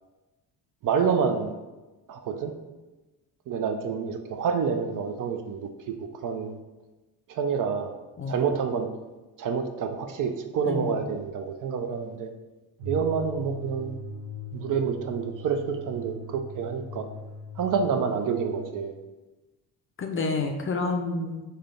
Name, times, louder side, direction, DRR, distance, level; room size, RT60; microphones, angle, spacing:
voice 1, 0.8-1.5 2.1-2.5 3.5-5.9 6.2-6.6 7.3-7.9 8.3-8.9 9.4-12.3 12.9-13.9 14.5-17.1 17.6-19.0, right 6 dB, 50° right, 6 dB, 0.5 m, -28 dB
voice 2, 8.2-8.5 10.6-11.0 20.0-21.4, left 3 dB, 30° left, 4 dB, 0.5 m, -29 dB
sound 1, 12.8-18.8, left 1 dB, 70° right, 0.9 m, -40 dB
3.3 x 2.8 x 3.7 m, 1.1 s
supercardioid pair, 65°, 43 cm